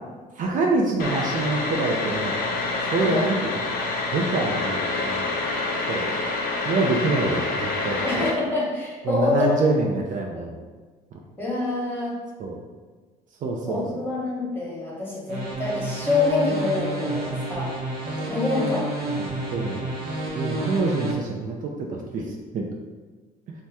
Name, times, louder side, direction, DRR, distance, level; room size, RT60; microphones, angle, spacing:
voice 1, 0.4-2.4 2.9-3.4 4.1-5.3 5.9-6.1 6.7-8.3 9.1-10.6 12.4-12.6 13.4-13.8 19.2-19.9 20.3-22.7, right 3 dB, 50° right, 0 dB, 0.4 m, -26 dB
sound 1, 1.0-8.3, left 3 dB, 60° left, 0.5 m, -27 dB
voice 2, 3.0-3.3 6.0-6.3 8.0-9.5 10.3-10.4 11.4-12.2 13.6-17.7 18.0-18.9, left 3 dB, 15° left, -6 dB, 1.0 m, -26 dB
sound 2, 15.3-21.1, right 2 dB, 65° right, 0.8 m, -30 dB
2.8 x 2.1 x 3.4 m, 1.4 s
cardioid pair, 110°, 17 cm